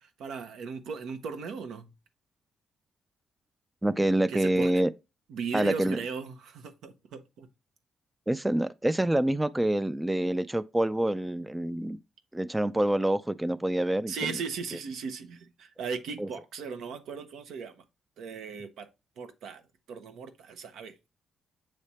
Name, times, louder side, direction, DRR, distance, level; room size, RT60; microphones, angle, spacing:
voice 1, 0.0-1.9 4.3-4.8 5.3-7.5 14.1-17.8 18.2-18.9 19.2-19.6 19.9-20.9, right 5 dB, 80° right, 0.9 m, -37 dB
voice 2, 3.8-4.9 5.5-6.0 8.3-12.0 12.3-14.3 16.2-16.3, right 1 dB, 10° right, 0.3 m, -26 dB
7.3 x 3.3 x 4.2 m
cardioid pair, 95°, 0 cm